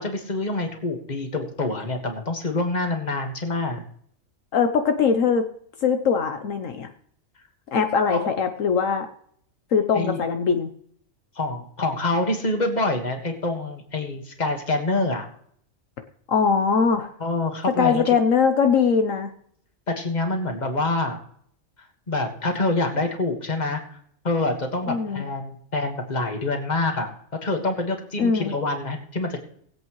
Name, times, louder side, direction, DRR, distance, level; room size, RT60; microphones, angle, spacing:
voice 1, 0.0-3.8 8.1-8.4 9.9-10.2 11.4-15.3 17.2-18.0 20.0-21.2 22.1-23.8 24.2-27.1 27.4-29.4, left 2 dB, 35° left, 4 dB, 1.8 m, -26 dB
voice 2, 4.5-5.4 5.8-6.9 7.7-9.1 9.7-10.7 16.3-17.1 17.8-19.3 24.9-25.2 28.2-28.5, left 6 dB, 75° left, 7 dB, 1.2 m, -21 dB
20.5 x 8.2 x 3.1 m, 0.64 s
omnidirectional pair, 1.4 m